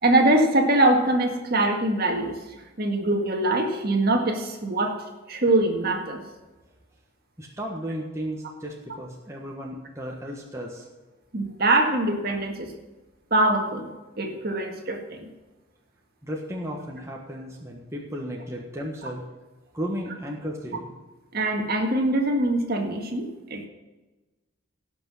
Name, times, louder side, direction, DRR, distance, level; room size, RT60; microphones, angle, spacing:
voice 1, 0.0-2.4 2.8-5.0 5.3-6.2 11.3-12.7 13.3-15.3 21.3-23.7, right 2 dB, 45° right, 3 dB, 1.8 m, -23 dB
voice 2, 7.4-10.8 16.2-19.2 19.7-20.9, equal, 15° right, -1 dB, 1.4 m, -34 dB
17.5 x 5.9 x 6.3 m, 1.2 s
head